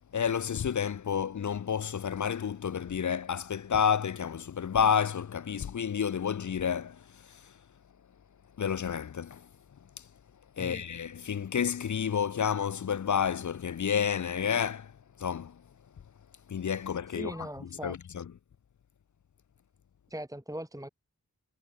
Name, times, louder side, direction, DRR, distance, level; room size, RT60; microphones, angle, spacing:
voice 1, 0.1-7.5 8.6-9.5 10.6-15.6 16.5-17.4 17.8-18.2, left 7 dB, 55° left, 0.5 m, -30 dB
voice 2, 17.2-18.0 20.1-20.9, equal, 10° right, 2.0 m, -40 dB
wide cardioid pair, 60°, 37 cm